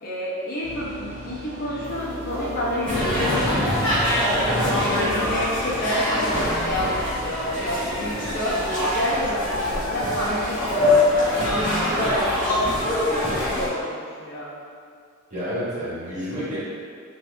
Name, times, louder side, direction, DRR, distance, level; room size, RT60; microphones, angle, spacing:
voice 1, 0.0-3.9 4.3-8.6 8.9-13.3 13.5-14.5, equal, 45° left, -7 dB, 0.8 m, -29 dB
sound 1, 0.6-7.3, right 1 dB, 60° right, 0.5 m, -38 dB
sound 2, 1.8-13.0, equal, 20° right, 0.9 m, -41 dB
sound 3, 2.9-13.7, left 1 dB, 25° left, 1.1 m, -23 dB
voice 2, 15.3-16.6, equal, 40° right, -10 dB, 1.3 m, -30 dB
3.2 x 2.7 x 3.4 m, 2.2 s
head